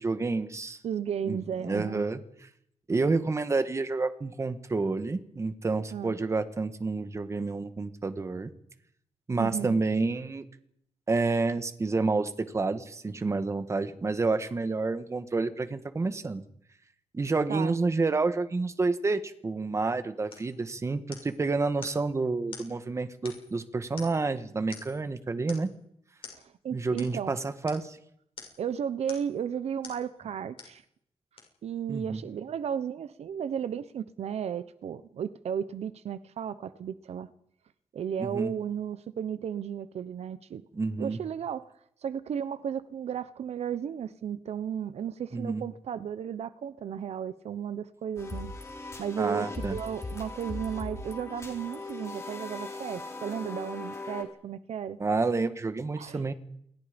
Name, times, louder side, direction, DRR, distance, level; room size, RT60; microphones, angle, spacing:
voice 1, 0.0-0.8 1.3-1.4 1.6-2.2 2.9-8.5 9.3-10.4 11.1-16.4 17.1-25.7 26.7-28.0 31.9-32.2 38.2-38.5 40.7-41.2 45.3-45.6 49.2-49.7 55.0-56.3, right 3 dB, 25° right, 10 dB, 1.7 m, -29 dB
voice 2, 0.8-2.0 5.9-6.2 9.4-9.8 17.5-17.8 26.3-27.3 28.6-30.8 31.6-37.3 37.9-40.6 41.0-41.7 42.0-48.5 49.0-55.0 56.0-56.2, right 8 dB, 75° right, 14 dB, 1.0 m, -34 dB
sound 1, 20.3-20.5 21.1-21.4 21.8-22.0 22.5-22.7 23.3-23.6 24.0-24.3 24.7-25.0 25.5-25.7 26.2-26.4 27.0-27.1 27.7-27.9 28.4-28.6 29.1-29.4 29.8-30.0 30.6-30.8 31.4-31.5, left 5 dB, 55° left, 6.7 m, -46 dB
sound 2, 48.2-54.2, left 2 dB, 25° left, 4.4 m, -39 dB
28.5 x 22.0 x 5.3 m, 0.71 s
wide cardioid pair, 150°, 11 cm